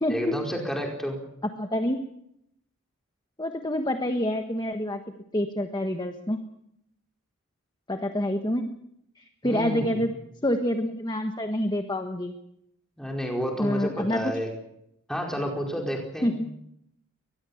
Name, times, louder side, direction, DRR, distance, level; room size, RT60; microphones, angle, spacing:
voice 1, 0.1-1.2 9.4-10.0 13.0-14.5 15.1-16.3, equal, ahead, 0 dB, 4.7 m, -30 dB
voice 2, 1.6-2.0 3.4-5.0 5.3-6.4 7.9-8.7 9.2-10.1 10.4-12.3 13.6-14.3 16.2-16.5, left 1 dB, 20° left, 6 dB, 1.3 m, -27 dB
23.5 x 20.0 x 7.2 m, 0.79 s
head